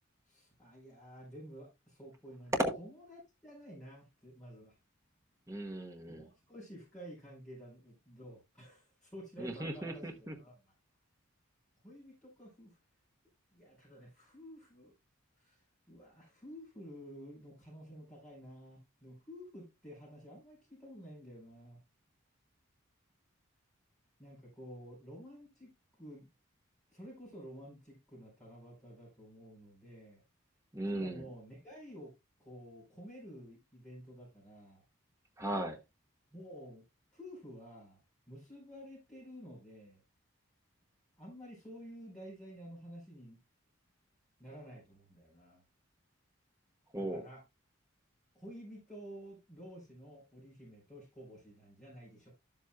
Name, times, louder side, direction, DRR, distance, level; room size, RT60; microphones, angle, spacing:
voice 1, 0.3-4.8 6.1-10.1 10.4-10.7 11.8-12.8 13.5-14.9 15.4-21.8 24.2-25.7 26.0-26.3 26.9-30.2 31.0-32.1 32.4-34.8 36.3-36.8 37.1-38.0 38.3-40.0 41.2-43.4 44.4-45.6 46.9-47.4 48.3-52.3, equal, 5° left, 4.7 m, -51 dB
voice 2, 5.5-6.3 9.4-10.3 30.7-31.2 35.4-35.8 46.9-47.3, right 1 dB, 15° right, 1.0 m, -36 dB
12.5 x 7.6 x 2.3 m
head